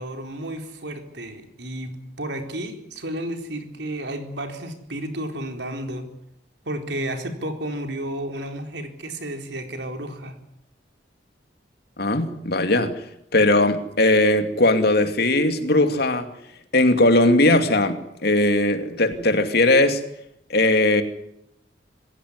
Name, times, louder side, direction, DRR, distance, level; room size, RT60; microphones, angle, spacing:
voice 1, 0.0-6.1 6.7-10.3, right 1 dB, 75° right, 4.2 m, -32 dB
voice 2, 12.0-16.3 16.7-20.0 20.5-21.0, left 2 dB, 65° left, 2.7 m, -19 dB
25.5 x 16.5 x 9.8 m
head